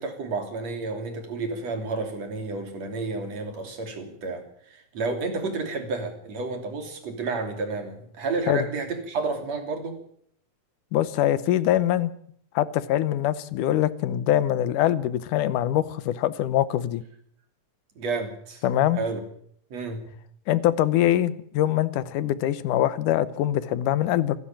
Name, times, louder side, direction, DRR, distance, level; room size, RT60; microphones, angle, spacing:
voice 1, 0.0-10.0 18.0-18.6 18.9-19.2 19.7-20.0, right 3 dB, 55° right, 5 dB, 4.1 m, -31 dB
voice 2, 10.9-12.1 12.6-17.0 18.6-19.0 20.5-24.4, left 12 dB, 85° left, 16 dB, 2.5 m, -23 dB
26.5 x 11.0 x 8.9 m, 0.66 s
omnidirectional pair, 3.5 m